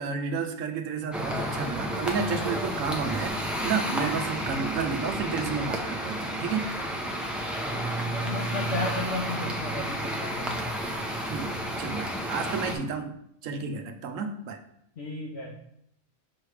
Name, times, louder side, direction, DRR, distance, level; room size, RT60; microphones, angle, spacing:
voice 1, 0.0-3.4 3.6-6.7 11.3-14.6, right 5 dB, 80° right, 6 dB, 1.0 m, -31 dB
sound 1, 1.1-12.8, right 1 dB, ahead, 0.6 m, -31 dB
voice 2, 7.9-10.6 15.0-15.5, left 2 dB, 55° left, -2 dB, 1.1 m, -33 dB
6.1 x 3.2 x 4.8 m, 0.74 s
omnidirectional pair, 1.4 m